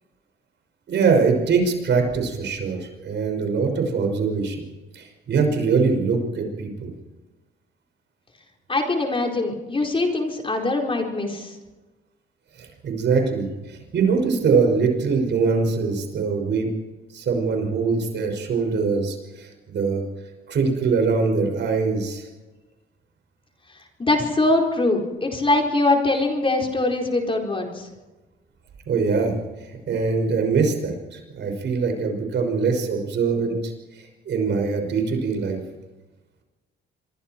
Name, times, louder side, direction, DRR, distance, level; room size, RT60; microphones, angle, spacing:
voice 1, 0.9-4.7 4.9-6.9 12.6-16.7 17.1-20.0 20.5-22.2 28.9-29.4 29.6-35.6, right 5 dB, 65° right, 4 dB, 5.8 m, -23 dB
voice 2, 8.7-11.6 24.0-27.9, left 2 dB, 25° left, 1 dB, 4.5 m, -22 dB
26.5 x 23.0 x 4.6 m, 1.2 s
cardioid pair, 90°, 20 cm